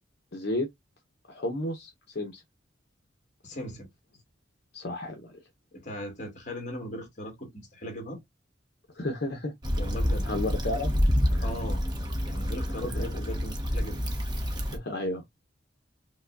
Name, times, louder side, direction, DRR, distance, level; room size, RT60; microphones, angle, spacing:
voice 1, 0.3-0.7 1.3-2.4 4.7-5.4 8.9-9.5 10.2-10.9 11.3-11.5 12.8-12.9 14.7-15.2, left 1 dB, 55° left, 0.8 m, -32 dB
voice 2, 3.4-3.9 5.7-8.2 9.8-10.3 11.4-11.8 12.2-14.0, equal, 40° left, 1.6 m, -38 dB
Stream / Traffic noise roadway noise / Trickle dribble, 9.6-14.8, equal, 20° right, 0.8 m, -28 dB
5.1 x 2.2 x 2.4 m
head